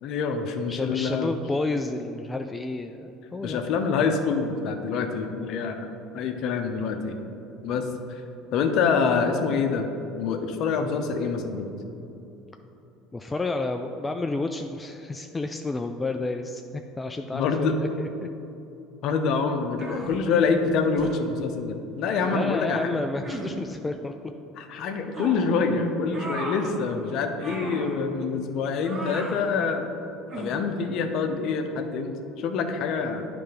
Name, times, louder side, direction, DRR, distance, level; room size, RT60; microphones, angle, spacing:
voice 1, 0.0-1.3 3.4-5.9 6.1-7.2 7.6-8.2 8.5-9.9 10.2-11.7 17.3-17.8 19.0-22.9 24.6-29.9 30.4-33.3, left 5 dB, 60° left, 6 dB, 0.7 m, -26 dB
voice 2, 0.7-3.6 13.1-16.6 17.0-18.3 20.0-20.1 22.3-24.1, left 2 dB, 15° left, 5 dB, 0.3 m, -30 dB
sound 1, 19.8-20.2 21.0-21.2 22.2-22.5 23.2-23.5 25.1-25.4 26.1-26.7 27.4-27.9 28.8-29.4 30.3-30.6, right 1 dB, 40° right, 1.3 m, -35 dB
9.4 x 3.4 x 5.1 m, 2.9 s
supercardioid pair, 90°, 0 cm